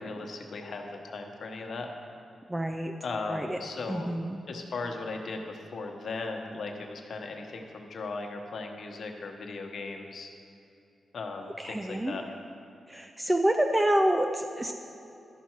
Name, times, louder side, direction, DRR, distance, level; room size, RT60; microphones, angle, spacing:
voice 1, 0.0-1.9 3.0-4.1 4.5-10.3 11.1-12.3, left 3 dB, 65° left, 3 dB, 1.0 m, -37 dB
voice 2, 2.5-2.9 3.3-3.6 3.9-4.4 11.6-12.2 12.9-14.7, right 1 dB, 15° right, 5 dB, 0.5 m, -27 dB
11.5 x 5.6 x 4.5 m, 2.7 s
cardioid pair, 65°, 0 cm